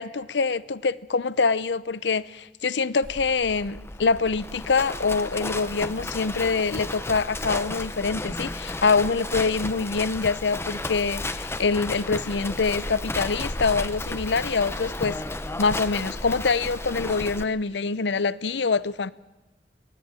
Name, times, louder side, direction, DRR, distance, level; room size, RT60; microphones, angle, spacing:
voice 1, 0.0-15.2 15.6-19.1, left 4 dB, 80° left, 0.7 m, -25 dB
Livestock farm animals working animals, 3.0-17.4, left 2 dB, 15° left, 0.9 m, -33 dB
22.0 x 17.0 x 8.9 m
head